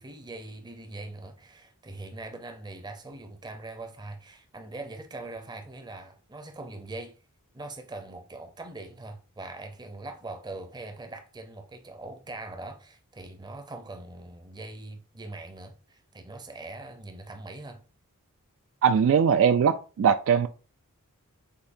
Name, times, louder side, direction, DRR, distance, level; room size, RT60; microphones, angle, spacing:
voice 1, 0.0-7.1 7.5-17.8, right 2 dB, 20° right, 0.6 m, -42 dB
voice 2, 18.8-20.5, right 7 dB, 60° right, 0.3 m, -21 dB
6.7 x 2.7 x 2.6 m
head